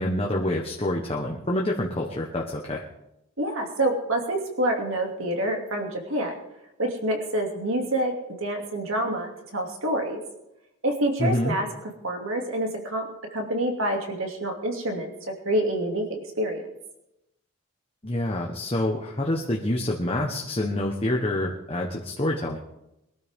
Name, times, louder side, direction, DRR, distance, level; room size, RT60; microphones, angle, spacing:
voice 1, 0.0-2.8 11.2-11.6 18.0-22.6, left 1 dB, 25° left, -1 dB, 1.2 m, -27 dB
voice 2, 3.4-6.4 6.8-8.1 8.4-10.2 10.8-11.7 12.0-13.0 13.3-15.1 15.4-16.6, right 1 dB, 65° right, 2 dB, 2.7 m, -27 dB
23.0 x 12.5 x 3.7 m, 0.90 s
head